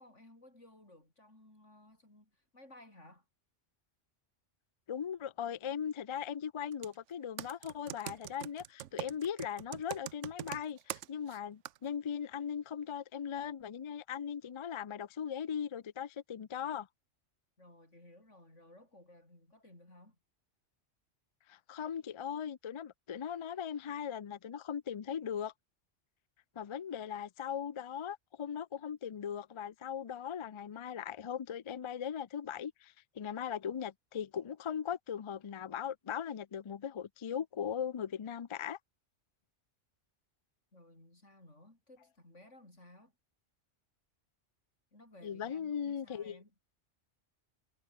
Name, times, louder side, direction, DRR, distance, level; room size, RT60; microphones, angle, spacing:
voice 1, 0.0-3.3 17.6-20.2 40.7-43.1 44.9-46.5, left 1 dB, 85° left, 8.5 m, -58 dB
voice 2, 4.9-16.9 21.5-25.5 26.6-38.8 45.2-46.4, left 8 dB, 45° left, 0.3 m, -39 dB
Computer keyboard, 6.7-6.9 7.4-11.4 11.7-11.8, right 12 dB, 85° right, 1.0 m, -42 dB
omnidirectional pair, 1.2 m